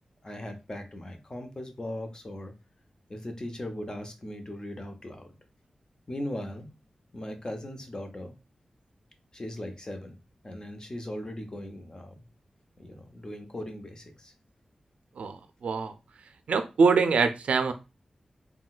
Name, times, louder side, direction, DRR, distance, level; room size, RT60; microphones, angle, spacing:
voice 1, 0.2-2.5 3.1-5.3 6.1-6.7 7.1-8.3 9.3-10.2 10.4-12.1 12.8-14.3, left 1 dB, 35° left, 5 dB, 0.7 m, -38 dB
voice 2, 15.6-15.9 16.5-17.7, right 4 dB, 90° right, 9 dB, 0.4 m, -23 dB
3.7 x 2.2 x 2.4 m, 0.27 s
cardioid pair, 55°, 2 cm